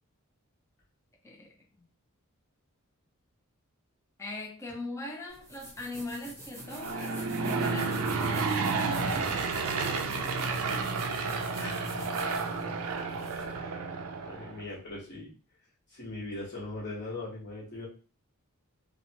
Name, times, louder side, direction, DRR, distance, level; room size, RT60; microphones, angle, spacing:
voice 1, 1.2-1.9 4.2-9.5, left 2 dB, 15° left, 0.4 m, -41 dB
sound 1, 5.3-13.6, right 1 dB, 15° right, 0.7 m, -47 dB
Aircraft / Engine, 6.6-14.6, right 4 dB, 80° right, 0.4 m, -31 dB
voice 2, 11.6-12.1 12.6-12.7 13.5-13.7 14.2-15.3 15.9-17.9, left 2 dB, 50° left, 1.1 m, -40 dB
2.8 x 2.1 x 2.8 m
head